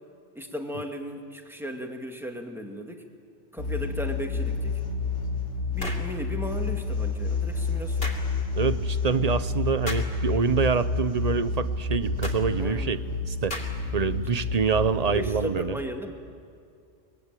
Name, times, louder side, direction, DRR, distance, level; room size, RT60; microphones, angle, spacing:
voice 1, 0.4-3.0 3.5-4.8 5.7-8.1 12.6-12.9 15.1-16.1, equal, ahead, 3 dB, 2.1 m, -35 dB
sound 1, 3.6-15.4, left 3 dB, 80° left, 2.8 m, -29 dB
sound 2, 5.8-6.1 8.0-8.2 9.8-10.1 12.2-12.4 13.5-13.9, left 2 dB, 50° left, 3.0 m, -35 dB
voice 2, 8.5-13.0 13.3-13.6 13.9-15.8, right 6 dB, 40° right, 13 dB, 0.7 m, -26 dB
24.0 x 21.0 x 9.0 m, 2.4 s
omnidirectional pair, 1.3 m